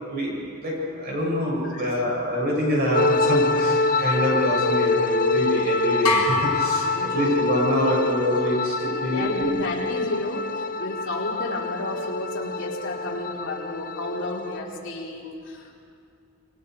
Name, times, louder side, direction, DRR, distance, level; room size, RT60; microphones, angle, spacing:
voice 1, 0.1-9.5, equal, 45° right, -4 dB, 7.7 m, -25 dB
sound 1, 2.9-14.6, left 3 dB, 40° left, 0.8 m, -26 dB
sound 2, 6.0-7.8, left 3 dB, 85° left, 2.7 m, -27 dB
voice 2, 6.8-7.4 9.1-15.7, left 2 dB, 55° left, -4 dB, 4.1 m, -32 dB
29.0 x 23.5 x 4.8 m, 2.4 s
head